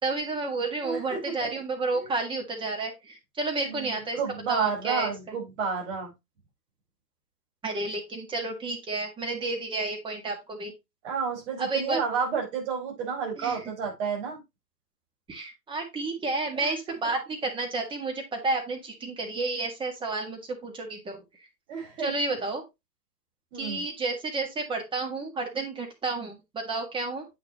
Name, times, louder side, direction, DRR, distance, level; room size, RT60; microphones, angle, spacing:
voice 1, 0.0-4.2 4.5-5.1 7.6-10.7 11.6-12.0 13.4-13.6 15.3-21.2 22.0-22.6 23.5-27.3, right 3 dB, 10° right, 3 dB, 1.7 m, -31 dB
voice 2, 0.8-1.2 1.9-2.1 3.6-6.1 11.0-14.4 16.5-16.7 21.7-22.1 23.5-23.8, right 6 dB, 45° right, 0 dB, 4.9 m, -31 dB
8.5 x 6.2 x 2.9 m, 0.21 s
hypercardioid pair, 130°, 50 cm